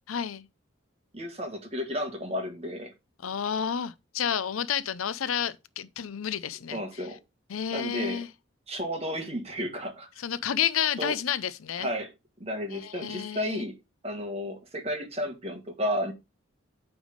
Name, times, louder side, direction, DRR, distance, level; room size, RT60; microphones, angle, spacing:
voice 1, 0.1-0.5 3.2-6.8 7.5-8.3 10.2-11.9 12.7-13.6, left 8 dB, 80° left, 0.5 m, -30 dB
voice 2, 1.1-2.9 6.7-7.2 7.7-8.2 8.7-10.1 11.0-11.1 11.8-12.1 12.4-13.7 14.0-16.1, equal, 30° right, 1.6 m, -32 dB
8.8 x 3.5 x 5.0 m
head